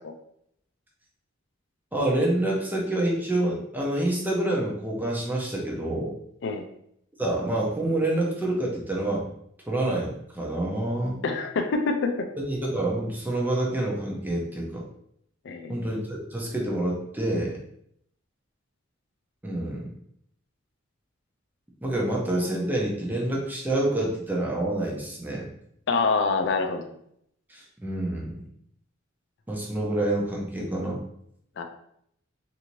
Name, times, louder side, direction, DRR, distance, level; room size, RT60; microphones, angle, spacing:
voice 1, 1.9-6.1 7.2-9.3 9.7-11.2 12.4-14.8 15.7-17.6 19.4-19.9 21.8-25.5 27.5-28.4 29.5-31.0, right 1 dB, 10° right, -3 dB, 0.6 m, -27 dB
voice 2, 11.2-12.3 15.4-15.8 25.9-26.9 31.6-31.7, left 4 dB, 60° left, 6 dB, 0.4 m, -25 dB
2.7 x 2.6 x 3.0 m, 0.72 s
head